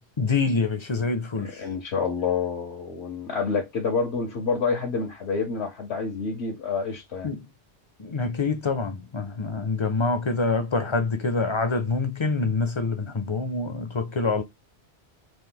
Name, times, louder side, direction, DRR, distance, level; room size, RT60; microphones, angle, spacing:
voice 1, 0.2-1.6 7.2-7.5 8.0-14.4, left 3 dB, 35° left, 0.5 m, -26 dB
voice 2, 1.6-7.3, left 5 dB, 80° left, 1.2 m, -28 dB
3.2 x 2.5 x 3.6 m
omnidirectional pair, 1.1 m